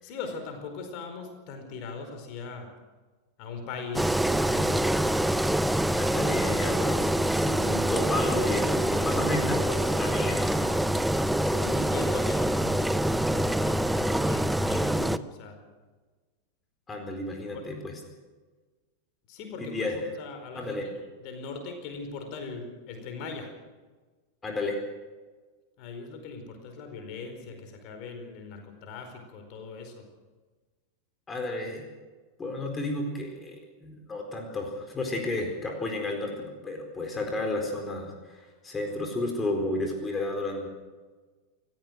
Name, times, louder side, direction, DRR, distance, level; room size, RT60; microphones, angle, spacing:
voice 1, 0.0-2.7 3.4-4.9 11.1-15.6 17.5-17.6 19.3-19.9 20.2-20.9 21.2-23.5 25.8-30.0, left 4 dB, 40° left, 6 dB, 4.7 m, -40 dB
Engine, 3.9-15.2, right 1 dB, 5° right, 0.7 m, -25 dB
voice 2, 5.9-10.7 16.9-18.0 19.6-20.0 20.5-20.9 24.4-24.8 31.3-31.8 32.4-40.7, left 2 dB, 15° left, 2 dB, 4.4 m, -32 dB
28.5 x 15.0 x 6.5 m, 1.3 s
figure-of-eight pair, 90°, 0 cm